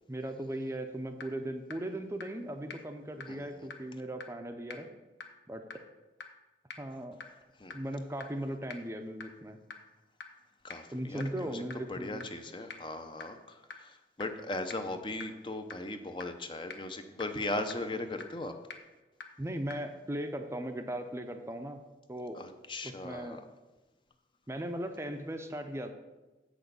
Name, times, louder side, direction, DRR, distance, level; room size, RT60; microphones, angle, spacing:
voice 1, 0.1-4.9 5.5-5.6 6.8-7.2 7.7-9.6 10.9-12.2 19.4-21.8 22.1-22.4 22.8-23.4 24.5-25.9, right 1 dB, 15° right, 6 dB, 0.5 m, -38 dB
sound 1, 0.7-0.8 1.2-1.3 1.7-1.8 2.2-2.3 2.7-2.8 3.2-3.3 3.7-3.8 4.2-4.3 4.7-4.8 5.2-5.3 5.7-5.8 6.2-6.3 6.7-6.8 7.2-7.3 7.7-7.8 8.2-8.3 8.7-8.8 9.2-9.3 9.7-9.8 10.2-10.3 10.7-10.8 11.2-11.3 11.7-11.8 12.2-12.3 12.7-12.8 13.2-13.3 13.7-13.8 14.2-14.3 14.7-14.8 15.2-15.3 15.7-15.8 16.2-16.3 16.7-16.8 17.2-17.3 17.7-17.8 18.2-18.3 18.7-18.8 19.2-19.3 19.7-19.8, left 5 dB, 80° left, 1.0 m, -42 dB
voice 2, 3.3-3.7 7.6-7.8 10.6-11.6 11.9-18.5 22.3-23.4, left 2 dB, 30° left, 7 dB, 0.6 m, -38 dB
7.8 x 6.3 x 6.8 m, 1.2 s
head